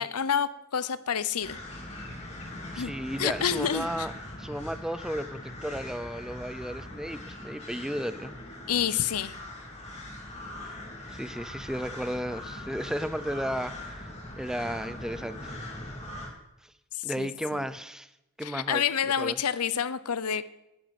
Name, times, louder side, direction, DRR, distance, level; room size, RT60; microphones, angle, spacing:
voice 1, 0.0-1.6 2.8-2.9 3.2-4.1 8.7-9.4 16.9-17.6 18.4-20.4, left 8 dB, 80° left, 15 dB, 0.7 m, -29 dB
sound 1, 1.4-16.3, left 1 dB, 30° left, 3.2 m, -41 dB
voice 2, 2.7-4.1 4.4-8.4 10.6-10.8 11.1-15.7 16.6-16.7 17.0-18.1 18.4-18.8 19.2-19.4, equal, 5° right, 13 dB, 0.6 m, -34 dB
11.0 x 9.2 x 9.4 m, 0.90 s
head